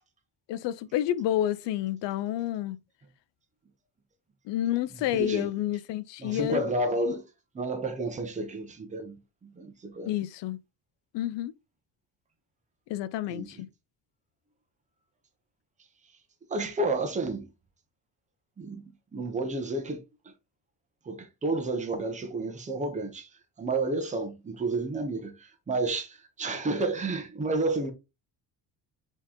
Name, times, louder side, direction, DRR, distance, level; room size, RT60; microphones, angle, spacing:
voice 1, 0.5-2.8 4.5-6.6 10.1-10.6 11.1-11.5 12.9-13.7, left 12 dB, 75° left, 0.5 m, -29 dB
voice 2, 5.1-5.5 6.2-7.2 7.5-10.1 13.3-13.6 16.5-17.5 18.6-18.8 19.1-20.3 21.1-23.3 23.6-27.9, right 2 dB, 15° right, 0.7 m, -31 dB
4.4 x 3.0 x 3.6 m
cardioid pair, 170°, 43 cm